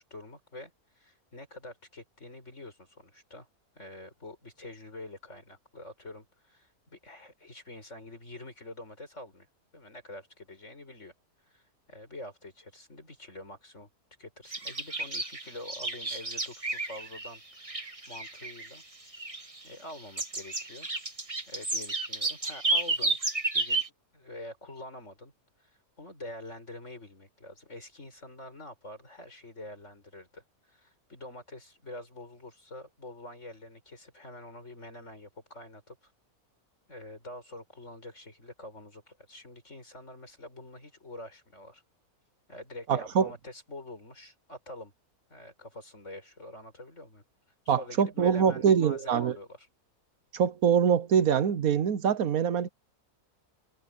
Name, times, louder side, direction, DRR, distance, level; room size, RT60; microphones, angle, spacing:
voice 1, 0.0-3.5 3.8-9.5 9.7-11.1 11.5-13.9 14.2-17.4 17.7-18.8 19.6-20.9 21.5-23.2 23.5-23.8 24.1-25.3 25.6-36.1 36.9-41.8 42.5-44.9 45.3-47.2 47.7-49.7, left 1 dB, 50° left, 7.5 m, -46 dB
sound 1, 14.5-17.4 17.6-18.8 19.1-19.9 20.2-23.9, right 2 dB, 20° right, 1.9 m, -32 dB
voice 2, 42.9-43.3 47.7-49.3 50.3-52.7, right 7 dB, 70° right, 1.3 m, -24 dB
omnidirectional pair, 1.6 m